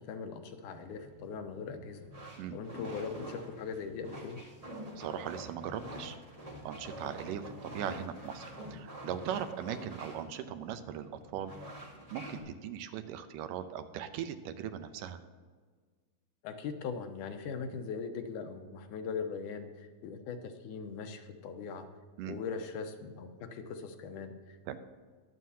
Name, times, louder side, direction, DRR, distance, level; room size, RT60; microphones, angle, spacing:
voice 1, 0.0-2.1 2.5-4.4 16.4-21.9 22.3-24.8, left 5 dB, 75° left, 6 dB, 2.3 m, -40 dB
sound 1, 0.8-12.4, equal, 55° right, 0.4 m, -47 dB
voice 2, 5.0-6.2 6.6-11.5 12.1-15.2 22.2-22.4 24.7-24.8, right 9 dB, 85° right, 10 dB, 2.3 m, -39 dB
21.0 x 7.6 x 2.8 m, 1.6 s
omnidirectional pair, 3.8 m